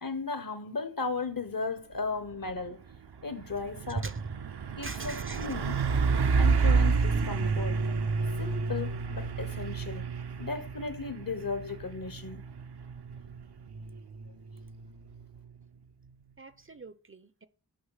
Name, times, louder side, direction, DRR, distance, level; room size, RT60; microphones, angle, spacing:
voice 1, 0.0-2.8 3.2-4.0 4.8-5.8 6.4-7.8 8.4-10.0 10.4-12.4, left 4 dB, 60° left, 1.1 m, -35 dB
Truck, 2.3-2.6 2.9-15.5, right 4 dB, 75° right, 0.7 m, -30 dB
voice 2, 3.9-4.4 4.8-5.5 16.4-17.5, right 4 dB, 35° right, 0.5 m, -39 dB
6.5 x 5.4 x 5.6 m
wide cardioid pair, 50°, 39 cm